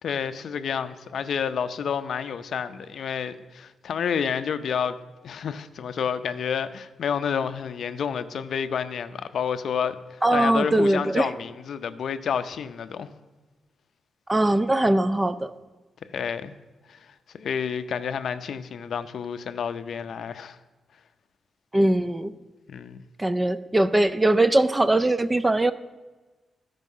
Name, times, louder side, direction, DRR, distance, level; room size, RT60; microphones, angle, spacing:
voice 1, 0.0-5.0 5.2-13.1 16.1-16.5 16.9-20.6 22.7-23.0, left 7 dB, 65° left, 12 dB, 0.5 m, -29 dB
voice 2, 10.2-11.3 14.3-15.5 21.7-22.3 23.2-25.7, right 1 dB, 15° right, 13 dB, 0.3 m, -21 dB
13.5 x 5.4 x 5.4 m, 1.2 s
wide cardioid pair, 140°, 0 cm